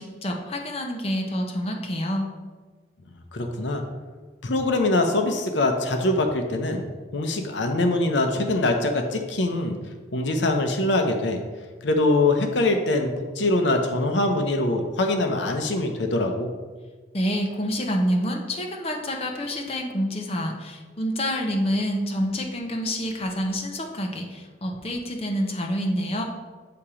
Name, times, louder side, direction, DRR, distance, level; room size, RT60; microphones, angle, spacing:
voice 1, 0.0-2.3 17.1-26.2, equal, 35° left, 2 dB, 0.7 m, -27 dB
voice 2, 3.3-3.8 4.4-6.8 7.1-9.8 10.1-11.4 11.8-16.5, left 2 dB, 80° left, 4 dB, 0.7 m, -23 dB
8.3 x 2.9 x 4.9 m, 1.4 s
head